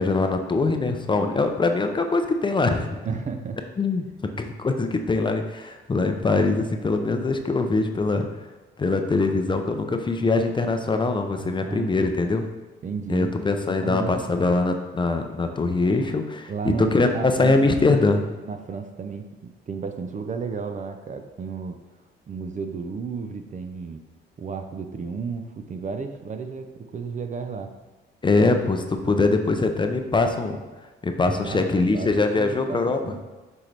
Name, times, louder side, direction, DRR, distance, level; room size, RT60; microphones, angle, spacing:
voice 1, 0.0-3.0 3.8-4.1 4.4-8.3 8.8-12.4 13.1-16.5 16.9-18.2 28.2-30.6 31.0-33.0, left 3 dB, 25° left, 5 dB, 0.6 m, -22 dB
voice 2, 3.0-3.6 11.4-12.2 12.8-13.3 13.6-14.3 16.5-17.6 18.4-21.8 22.3-24.0 24.4-27.8 31.3-31.6 31.9-33.2, right 5 dB, 40° right, 7 dB, 0.6 m, -33 dB
6.3 x 4.5 x 3.4 m, 1.2 s
cardioid pair, 90°, 20 cm